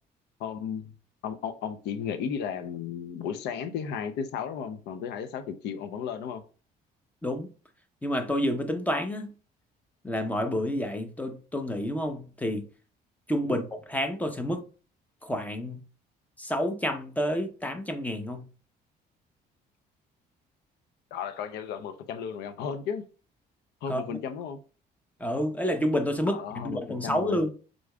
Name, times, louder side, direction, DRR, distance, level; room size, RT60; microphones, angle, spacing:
voice 1, 0.4-0.9 1.2-6.4 13.4-13.6 21.1-23.0 23.8-24.6 26.3-27.4, left 7 dB, 80° left, 0.6 m, -34 dB
voice 2, 8.0-9.3 10.0-12.7 13.3-14.6 15.2-15.8 16.4-18.5 23.9-24.0 25.2-27.5, equal, 10° left, 0.8 m, -29 dB
5.0 x 3.8 x 2.3 m
cardioid pair, 110°, 17 cm